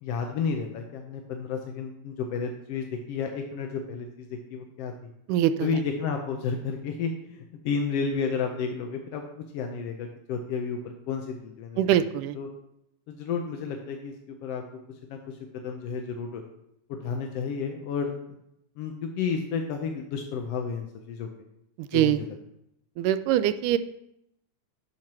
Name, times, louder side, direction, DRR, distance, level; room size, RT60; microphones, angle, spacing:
voice 1, 0.0-4.9 5.6-9.2 9.5-11.8 12.3-12.5 13.1-14.1 14.4-14.6 15.1-15.4 15.6-16.4 16.9-18.1 18.8-21.3 21.9-22.3, left 5 dB, 70° left, 3 dB, 1.5 m, -31 dB
voice 2, 5.3-5.7 11.8-12.4 21.8-22.2 23.0-23.8, right 11 dB, 85° right, 12 dB, 2.1 m, -23 dB
10.5 x 4.6 x 6.0 m, 0.79 s
omnidirectional pair, 3.6 m